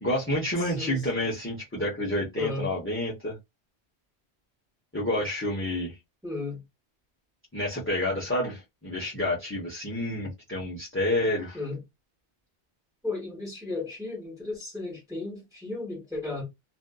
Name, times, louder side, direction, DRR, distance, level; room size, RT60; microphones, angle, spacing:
voice 1, 0.0-3.3 4.9-5.9 7.5-11.6, left 1 dB, 15° left, 0.7 m, -29 dB
voice 2, 6.2-6.6 11.5-11.8 13.0-16.4, left 3 dB, 5° right, 1.2 m, -34 dB
2.6 x 2.6 x 2.2 m
omnidirectional pair, 1.1 m